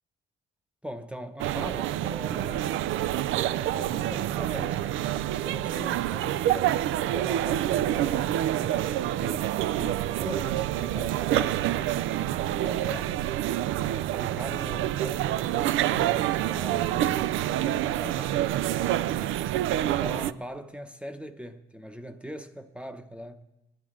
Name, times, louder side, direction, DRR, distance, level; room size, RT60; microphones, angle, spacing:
voice 1, 0.8-2.7 3.4-5.0 5.3-6.8 7.1-11.6 12.6-13.2 13.8-18.4 18.8-23.4, equal, 5° right, 0.7 m, -41 dB
sound 1, 1.4-20.3, right 13 dB, 80° right, 0.4 m, -27 dB
18.5 x 11.0 x 3.6 m
cardioid pair, 90°, 20 cm